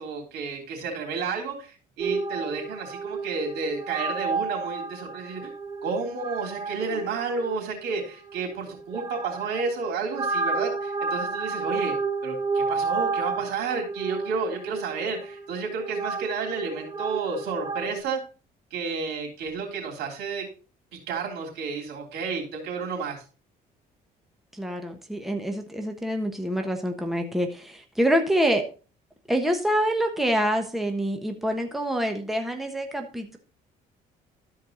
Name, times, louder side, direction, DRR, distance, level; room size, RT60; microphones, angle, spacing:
voice 1, 0.0-5.5 5.8-11.9 12.2-18.2 18.7-20.5 21.1-23.2, right 4 dB, 80° right, 1 dB, 3.3 m, -31 dB
sound 1, 2.0-18.0, right 4 dB, 25° right, 0.8 m, -32 dB
voice 2, 24.5-28.6 29.3-33.4, equal, ahead, 4 dB, 1.2 m, -26 dB
13.0 x 4.8 x 4.0 m, 0.36 s
cardioid pair, 110°, 17 cm